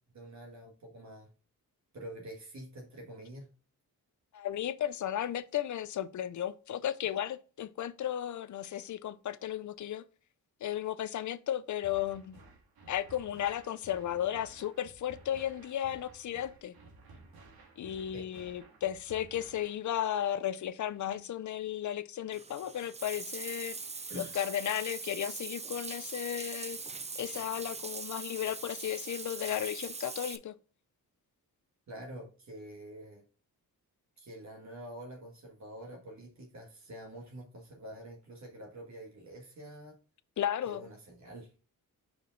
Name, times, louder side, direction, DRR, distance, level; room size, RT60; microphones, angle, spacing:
voice 1, 0.1-1.3 1.9-3.5 18.1-18.3 24.1-24.3 31.9-33.2 34.2-40.0 40.6-41.5, right 1 dB, 50° right, 1.7 m, -47 dB
voice 2, 4.3-10.0 10.6-12.4 12.9-16.8 17.8-23.8 24.2-26.8 27.2-30.6 40.4-40.9, left 11 dB, 55° left, 0.5 m, -34 dB
sound 1, 11.8-19.8, right 3 dB, 80° right, 1.8 m, -55 dB
Bathtub (filling or washing), 22.3-30.4, right 4 dB, 20° right, 0.4 m, -42 dB
5.0 x 4.9 x 3.8 m
wide cardioid pair, 120°, 36 cm